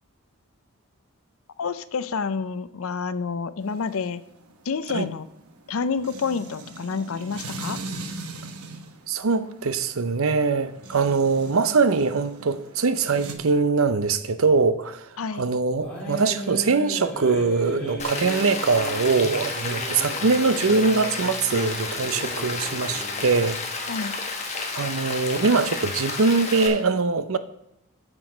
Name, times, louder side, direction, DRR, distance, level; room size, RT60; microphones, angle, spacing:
voice 1, 1.6-4.2 4.7-5.3 5.7-7.8 15.2-15.5 23.9-24.2, left 5 dB, 75° left, 0.5 m, -28 dB
sound 1, 3.6-13.3, right 3 dB, 90° right, 1.0 m, -40 dB
voice 2, 9.1-23.6 24.7-27.4, right 4 dB, 70° right, 0.6 m, -22 dB
sound 2, 15.8-23.5, left 1 dB, 5° left, 2.5 m, -37 dB
Rain, 18.0-26.7, left 4 dB, 30° left, 1.2 m, -31 dB
8.9 x 6.3 x 5.1 m
head